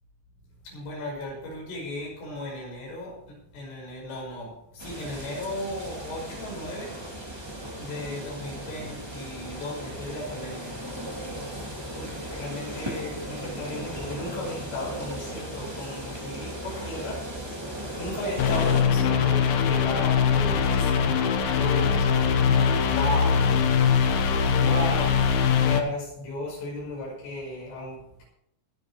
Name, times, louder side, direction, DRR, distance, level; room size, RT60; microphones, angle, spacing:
voice 1, 0.6-7.0 7.8-10.7 11.9-17.2 18.0-23.5 24.4-25.3 25.6-28.2, left 1 dB, 90° left, -2 dB, 8.3 m, -35 dB
sound 1, 4.8-18.8, equal, 15° right, 0.8 m, -37 dB
sound 2, 18.4-25.8, left 6 dB, 70° left, 2.3 m, -22 dB
22.0 x 7.5 x 4.6 m, 0.74 s
omnidirectional pair, 5.5 m